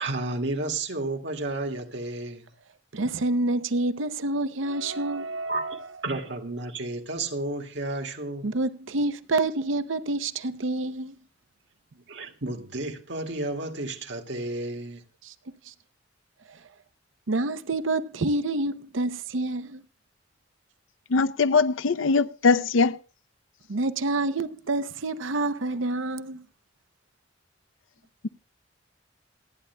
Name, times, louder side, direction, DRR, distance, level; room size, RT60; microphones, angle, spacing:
voice 1, 0.0-2.5 5.2-8.5 12.1-15.0, right 2 dB, 65° right, 2.1 m, -32 dB
voice 2, 2.9-5.9 8.4-11.1 15.2-15.3 15.6-15.7 16.5-16.7 17.3-19.8 23.7-26.4, right 2 dB, 80° right, 0.7 m, -28 dB
voice 3, 21.1-23.0, left 4 dB, 90° left, 0.6 m, -21 dB
27.0 x 9.7 x 2.2 m
head